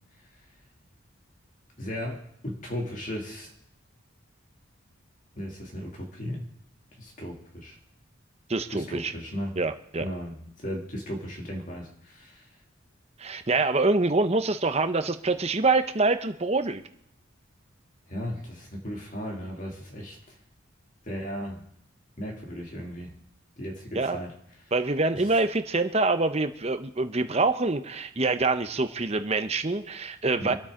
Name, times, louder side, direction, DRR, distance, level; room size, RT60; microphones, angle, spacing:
voice 1, 1.8-3.5 5.4-6.5 7.0-7.8 8.7-9.5 10.0-12.5 18.1-20.3 21.0-21.6 22.2-23.1 23.6-24.3 25.1-25.3 30.4-30.6, equal, 40° left, 0 dB, 2.7 m, -36 dB
voice 2, 8.5-9.1 9.6-10.1 13.2-16.8 23.9-24.2 24.7-30.5, right 3 dB, 30° right, 10 dB, 0.8 m, -25 dB
26.0 x 8.7 x 3.8 m, 0.74 s
head